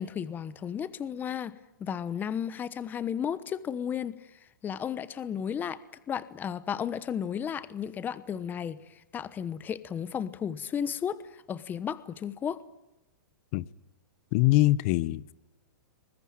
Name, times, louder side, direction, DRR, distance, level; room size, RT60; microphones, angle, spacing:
voice 1, 0.0-12.6, left 8 dB, 15° left, 1.0 m, -34 dB
voice 2, 14.3-15.3, left 18 dB, 45° left, 0.8 m, -23 dB
24.0 x 21.0 x 8.9 m
hypercardioid pair, 140°, 10 cm